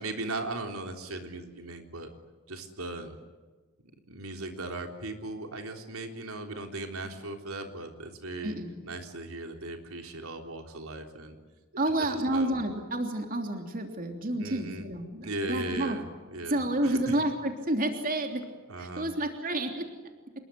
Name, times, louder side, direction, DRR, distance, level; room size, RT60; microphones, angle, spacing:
voice 1, 0.0-2.1 2.5-3.1 4.1-8.6 8.8-11.4 12.3-12.6 14.4-14.9 15.2-16.0 16.3-17.0 18.7-19.1, right 2 dB, 80° right, 4 dB, 3.7 m, -37 dB
voice 2, 11.8-16.0 16.4-18.4 18.8-19.9, right 1 dB, 40° right, 4 dB, 3.2 m, -30 dB
27.5 x 22.0 x 9.3 m, 1.3 s
head